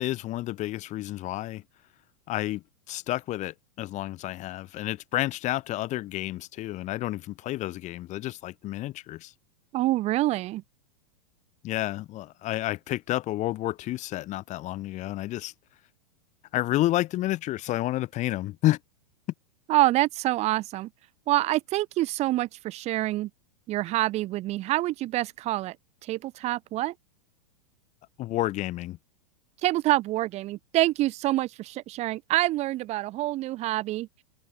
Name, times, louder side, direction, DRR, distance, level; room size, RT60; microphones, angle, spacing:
voice 1, 0.0-1.6 2.3-9.3 11.6-15.5 16.5-18.8 28.2-29.0, left 16 dB, 35° left, 2.9 m, -30 dB
voice 2, 9.7-10.6 19.7-20.9 21.3-23.3 23.7-25.8 26.0-26.9 29.6-34.2, right 16 dB, 35° right, 0.8 m, -26 dB
open air
hypercardioid pair, 100°, 20 cm